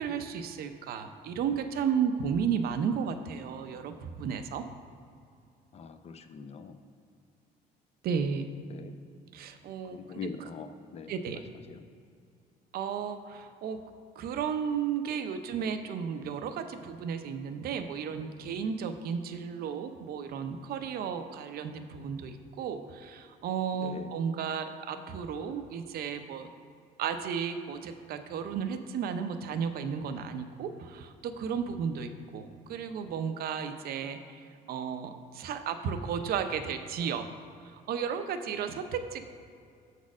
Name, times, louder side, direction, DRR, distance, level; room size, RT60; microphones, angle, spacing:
voice 1, 0.0-4.6 8.0-8.5 9.3-10.2 11.1-11.4 12.7-13.8 14.2-26.5 27.0-34.4 34.7-37.3 37.9-39.2, right 7 dB, 65° right, 8 dB, 0.6 m, -33 dB
voice 2, 5.7-6.8 8.7-8.9 9.9-10.7 10.9-11.1 11.7-11.8 23.8-24.1, left 6 dB, 40° left, 9 dB, 0.5 m, -42 dB
7.1 x 4.2 x 6.1 m, 2.4 s
cardioid pair, 110°, 17 cm